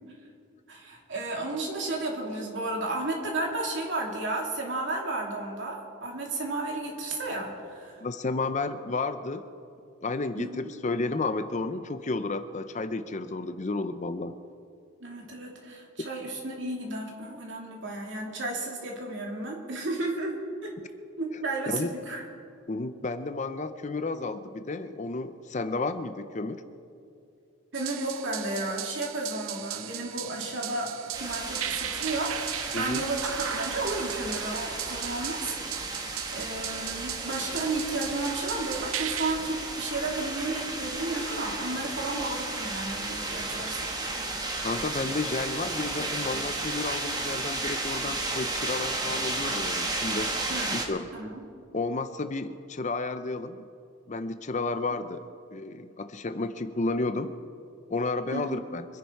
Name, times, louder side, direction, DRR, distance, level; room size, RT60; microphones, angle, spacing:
voice 1, 0.7-8.0 10.4-10.7 15.0-20.7 21.2-22.2 27.7-36.0 36.3-43.9 50.5-50.7 51.1-51.4 58.3-58.5, right 2 dB, 55° right, -1 dB, 2.9 m, -33 dB
voice 2, 8.0-9.5 10.0-14.4 21.7-21.9 22.7-26.6 32.7-33.0 44.6-50.3 50.7-51.1 51.7-53.6 54.1-55.3 55.5-57.4 57.9-58.9, left 3 dB, 35° left, 11 dB, 0.5 m, -32 dB
sound 1, 27.7-39.3, right 12 dB, 75° right, 0.5 m, -37 dB
sound 2, 31.1-50.9, right 2 dB, 20° right, 1.3 m, -33 dB
25.0 x 10.5 x 4.7 m, 2.5 s
head